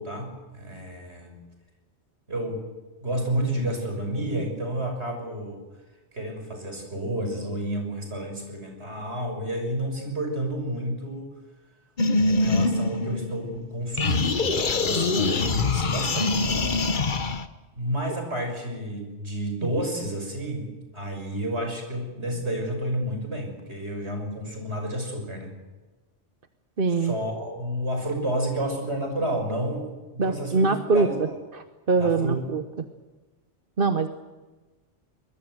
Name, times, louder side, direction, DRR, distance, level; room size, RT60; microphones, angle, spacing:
voice 1, 0.0-1.4 2.3-2.6 3.0-5.6 6.1-11.3 12.2-16.5 17.8-25.5 26.9-31.4 32.0-32.6, right 1 dB, 70° right, 4 dB, 6.6 m, -30 dB
sound 1, 12.0-13.6 14.0-17.5, left 3 dB, 45° left, 1.3 m, -24 dB
voice 2, 26.8-27.1 30.2-31.3 31.9-32.6 33.8-34.1, right 4 dB, 50° right, 8 dB, 1.2 m, -23 dB
24.0 x 21.0 x 8.0 m, 1.2 s
omnidirectional pair, 1.2 m